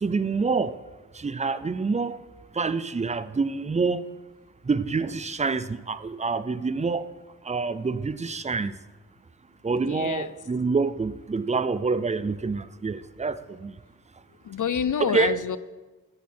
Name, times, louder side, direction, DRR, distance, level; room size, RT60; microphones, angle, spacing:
voice 1, 0.0-0.8 1.1-2.2 2.5-4.1 4.7-7.1 7.4-8.7 9.6-13.7 15.0-15.4, right 4 dB, 20° right, 14 dB, 0.4 m, -27 dB
voice 2, 9.9-10.3 14.4-15.6, left 8 dB, 60° left, 15 dB, 0.5 m, -27 dB
14.0 x 11.0 x 4.4 m, 1.2 s
wide cardioid pair, 135°, 34 cm